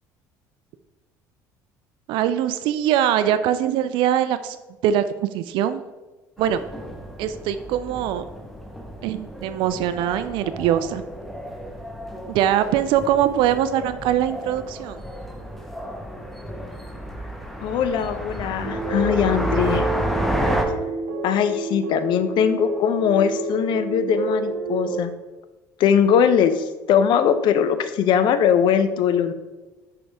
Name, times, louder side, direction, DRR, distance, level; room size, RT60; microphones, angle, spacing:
voice 1, 2.1-4.6 4.8-5.8 6.4-6.6 7.2-8.2 9.0-11.0 12.3-15.0, right 10 dB, 65° right, 12 dB, 0.4 m, -22 dB
sound 1, 6.4-20.6, equal, ahead, 1.1 m, -31 dB
voice 2, 17.6-19.8 21.2-25.1 25.8-29.3, left 8 dB, 60° left, 11 dB, 0.6 m, -20 dB
sound 2, 18.6-25.0, right 3 dB, 85° right, 0.8 m, -28 dB
6.2 x 5.5 x 3.5 m, 1.2 s
hypercardioid pair, 65°, 9 cm